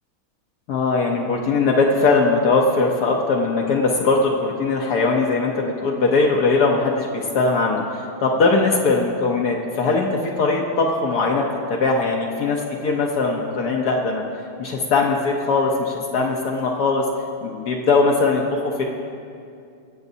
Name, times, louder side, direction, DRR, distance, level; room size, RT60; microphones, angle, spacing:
voice 1, 0.7-11.4 11.7-14.2 14.6-17.0 17.4-18.8, left 3 dB, 70° left, -1 dB, 1.3 m, -20 dB
22.0 x 7.8 x 2.7 m, 2.5 s
omnidirectional pair, 1.8 m